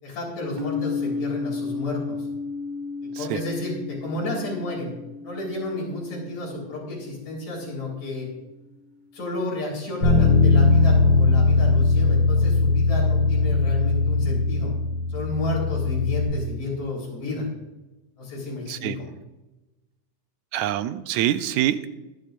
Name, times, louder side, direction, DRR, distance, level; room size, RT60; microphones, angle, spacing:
voice 1, 0.0-2.3 3.2-4.9 5.2-8.3 9.1-14.7 15.1-17.5 18.2-19.1, left 2 dB, 80° left, -3 dB, 5.3 m, -31 dB
sound 1, 0.6-8.4, left 4 dB, 50° right, 1.1 m, -34 dB
Bass guitar, 10.0-16.3, left 3 dB, 50° left, 4.1 m, -19 dB
voice 2, 20.5-21.9, right 12 dB, 80° right, 12 dB, 1.9 m, -25 dB
22.5 x 8.9 x 2.5 m, 1.0 s
omnidirectional pair, 3.3 m